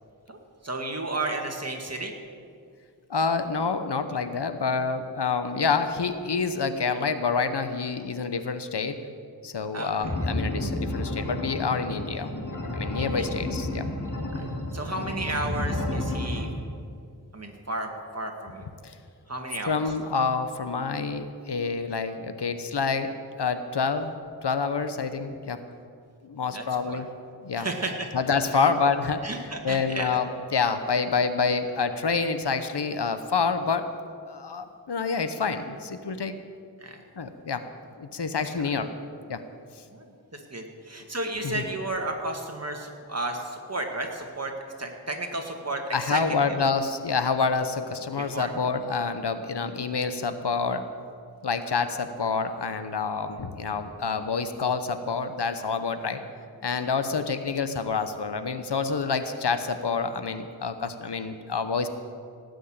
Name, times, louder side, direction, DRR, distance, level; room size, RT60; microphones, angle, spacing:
voice 1, 0.6-2.1 9.7-10.1 13.0-13.3 14.7-16.5 17.3-18.6 19.3-19.8 26.5-27.0 27.6-28.1 28.5-28.7 29.2-30.2 36.8-37.0 38.6-38.7 39.9-44.5 44.8-46.2 46.5-46.6 48.2-48.5 57.1-57.2, right 2 dB, 40° right, 2 dB, 1.9 m, -33 dB
voice 2, 3.1-9.0 9.4-12.3 12.7-13.9 18.8-19.0 19.7-23.1 23.4-24.1 24.4-25.6 26.2-27.1 27.4-27.7 28.1-29.3 29.6-33.9 34.3-36.4 37.2-37.6 38.0-38.9 39.3-39.4 41.4-41.6 45.9-50.9 51.4-56.2 56.6-61.9, left 5 dB, 75° left, 10 dB, 0.9 m, -27 dB
sound 1, 10.0-16.4, left 1 dB, 50° left, 2.4 m, -31 dB
17.5 x 6.4 x 8.7 m, 2.3 s
wide cardioid pair, 65°, 41 cm